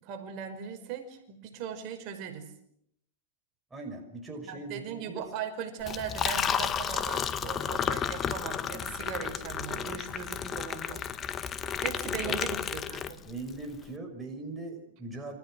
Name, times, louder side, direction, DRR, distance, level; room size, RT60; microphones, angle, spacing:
voice 1, 0.0-2.5 4.4-11.0 11.8-13.2, right 8 dB, 45° right, 5 dB, 5.5 m, -39 dB
voice 2, 3.7-5.2 12.2-12.3 13.2-15.4, right 2 dB, 10° right, 2 dB, 6.1 m, -40 dB
Liquid, 5.8-13.5, left 8 dB, 25° left, 1.6 m, -32 dB
29.0 x 26.5 x 6.4 m, 0.72 s
supercardioid pair, 135°, 0 cm